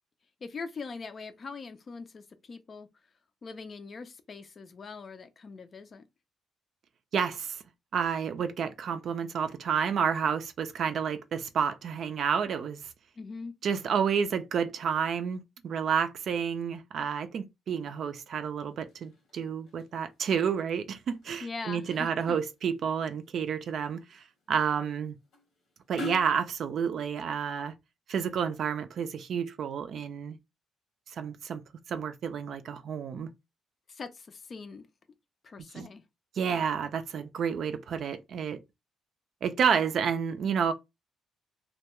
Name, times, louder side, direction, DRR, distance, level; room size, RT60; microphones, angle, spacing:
voice 1, 0.4-2.9 3.4-6.0 13.2-13.5 21.4-22.4 33.9-34.9 35.4-36.0, left 4 dB, 45° left, 0.4 m, -42 dB
voice 2, 7.1-7.6 7.9-12.9 13.6-25.2 25.9-27.7 28.1-30.4 31.1-31.6 31.9-33.3 35.7-35.9 36.4-38.6 39.4-40.7, right 7 dB, 65° right, 0.4 m, -30 dB
sound 1, 17.7-26.4, left 3 dB, 80° left, 1.0 m, -49 dB
2.2 x 2.2 x 2.9 m
cardioid pair, 90°, 0 cm